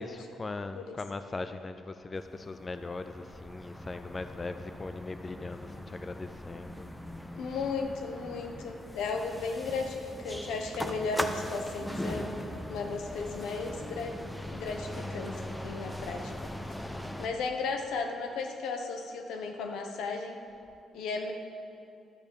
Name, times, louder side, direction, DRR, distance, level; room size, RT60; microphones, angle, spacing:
voice 1, 0.0-6.9 7.5-7.6 13.2-13.4, left 3 dB, 30° left, 9 dB, 0.5 m, -40 dB
sound 1, 2.2-17.3, left 1 dB, 5° left, 0.8 m, -40 dB
voice 2, 7.4-12.4 12.7-14.2 14.5-16.5 17.2-20.4 20.9-21.3, left 4 dB, 85° left, 4 dB, 1.1 m, -35 dB
12.5 x 7.0 x 6.9 m, 2.7 s
cardioid pair, 90°, 0 cm